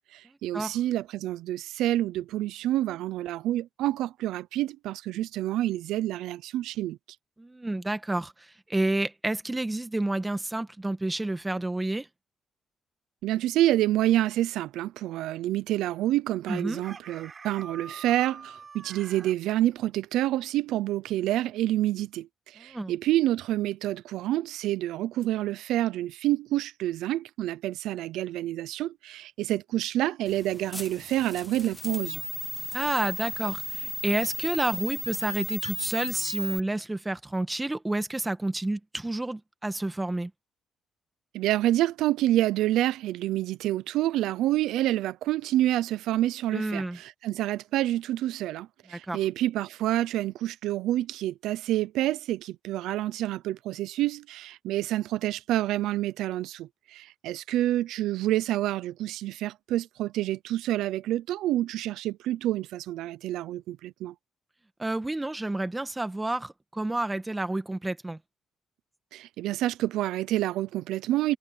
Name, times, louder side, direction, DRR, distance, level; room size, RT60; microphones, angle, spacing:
voice 1, 0.1-7.0 13.2-32.2 41.3-64.1 69.1-71.4, right 14 dB, 90° right, 0.6 m, -28 dB
voice 2, 7.4-8.3 8.7-12.1 16.5-16.8 22.6-22.9 32.7-40.3 46.5-47.0 49.1-49.2 64.8-68.2, right 2 dB, 15° right, 1.4 m, -29 dB
Chicken rooster, 16.5-19.4, right 5 dB, 40° right, 5.8 m, -45 dB
sound 1, 30.3-36.6, left 2 dB, 10° left, 0.4 m, -35 dB
cardioid pair, 90°, 0 cm